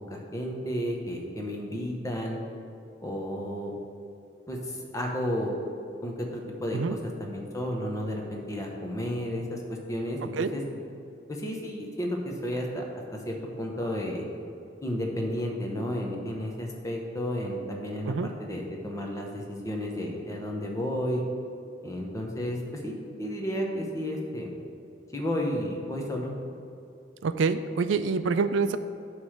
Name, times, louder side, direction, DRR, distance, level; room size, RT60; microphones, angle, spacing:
voice 1, 0.1-2.4 3.0-3.7 4.5-5.6 6.0-9.6 9.9-10.6 11.3-12.8 13.1-14.3 14.8-18.1 18.4-21.2 21.8-22.9 23.2-24.5 25.1-26.3, equal, 15° left, 0 dB, 0.9 m, -32 dB
voice 2, 27.2-28.8, right 4 dB, 80° right, 11 dB, 0.4 m, -26 dB
9.2 x 3.2 x 6.4 m, 2.6 s
head